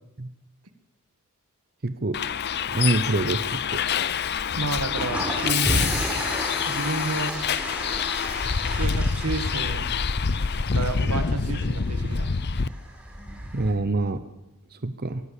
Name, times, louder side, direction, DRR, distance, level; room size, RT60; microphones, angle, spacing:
voice 1, 1.8-2.2 2.7-3.8 13.5-14.2 14.8-15.2, right 2 dB, 45° right, 10 dB, 0.9 m, -25 dB
Bus, 2.1-12.7, left 6 dB, 50° left, 0.7 m, -26 dB
voice 2, 4.5-5.9 6.6-7.3 8.6-9.9 10.7-12.3, right 3 dB, 80° right, 9 dB, 1.8 m, -31 dB
sound 1, 4.8-13.7, equal, 5° right, 4.4 m, -33 dB
23.5 x 15.0 x 8.4 m, 0.96 s
head